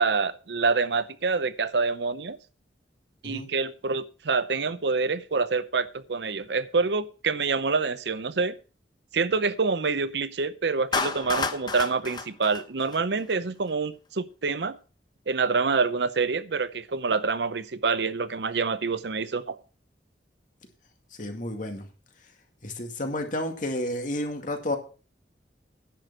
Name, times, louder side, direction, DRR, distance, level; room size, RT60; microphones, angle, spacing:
voice 1, 0.0-2.4 3.2-8.6 9.1-14.8 15.3-19.6, right 4 dB, 75° right, 0.7 m, -26 dB
Clapping, 10.9-13.3, left 4 dB, 25° left, 0.8 m, -31 dB
voice 2, 21.2-21.9 22.6-24.8, left 1 dB, 45° left, 2.1 m, -31 dB
10.5 x 6.7 x 6.2 m
head